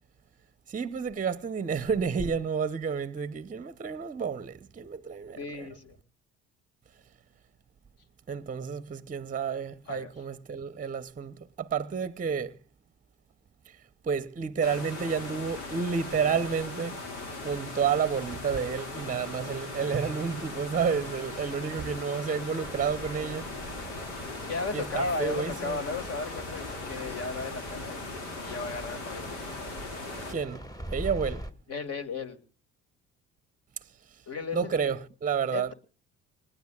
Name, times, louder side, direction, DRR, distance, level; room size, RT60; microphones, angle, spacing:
voice 1, 0.7-5.7 8.3-12.6 14.0-17.0 17.4-23.7 24.7-25.8 30.3-30.6 30.9-31.5 34.5-35.7, right 6 dB, 25° right, 0.8 m, -30 dB
voice 2, 5.4-6.0 9.8-10.1 24.5-28.1 28.4-29.4 31.7-32.4 34.3-34.9 35.5-35.7, left 4 dB, 45° left, 2.2 m, -35 dB
sound 1, 14.6-30.3, left 2 dB, 85° left, 2.7 m, -39 dB
sound 2, 22.6-31.5, equal, 10° left, 1.5 m, -43 dB
26.0 x 20.0 x 2.4 m
hypercardioid pair, 60°, 33 cm